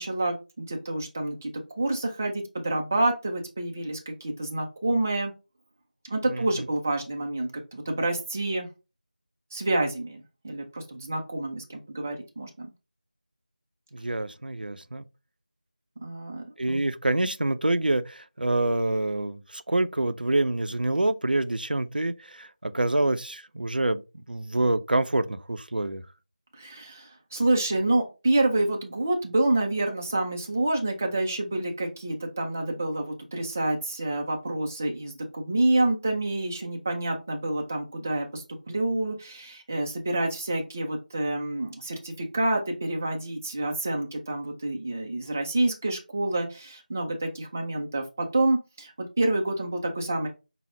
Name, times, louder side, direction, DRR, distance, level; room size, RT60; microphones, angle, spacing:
voice 1, 0.0-1.5 1.8-5.3 6.0-8.7 9.5-12.7 16.0-16.8 26.5-50.3, right 2 dB, 15° right, 0.3 m, -28 dB
voice 2, 13.9-15.0 16.6-26.0, right 2 dB, 75° right, 0.5 m, -26 dB
5.6 x 2.0 x 3.2 m
figure-of-eight pair, 170°, 5 cm